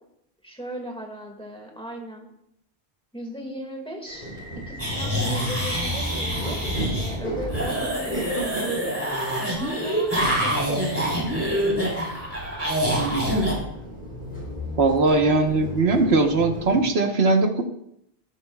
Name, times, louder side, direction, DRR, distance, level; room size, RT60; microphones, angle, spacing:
voice 1, 0.4-2.3 3.1-8.5 9.5-11.6, equal, 5° left, 1 dB, 2.0 m, -38 dB
sound 1, 4.1-16.8, equal, 50° left, 3.8 m, -35 dB
sound 2, 4.8-7.2 7.5-13.5, equal, 15° right, 4.0 m, -26 dB
voice 2, 12.9-13.3 14.8-17.6, right 3 dB, 75° right, 4 dB, 1.5 m, -20 dB
16.0 x 13.0 x 2.4 m, 0.75 s
omnidirectional pair, 1.1 m